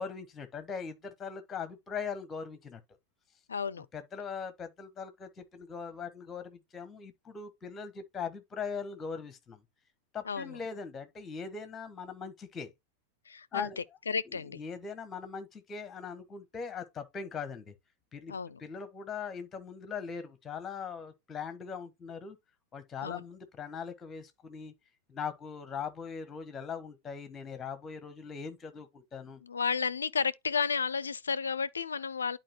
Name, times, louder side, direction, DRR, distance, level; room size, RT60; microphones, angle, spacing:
voice 1, 0.0-2.8 3.9-9.6 10.1-12.7 13.5-13.8 14.3-17.7 18.1-18.3 18.6-22.4 22.7-24.7 25.1-29.4, left 6 dB, 20° left, 1.2 m, -40 dB
voice 2, 3.5-3.9 10.3-10.6 13.3-14.6 18.3-18.6 23.0-23.2 29.4-32.4, left 5 dB, 75° left, 0.4 m, -32 dB
10.5 x 4.5 x 3.0 m
figure-of-eight pair, 90°, 0 cm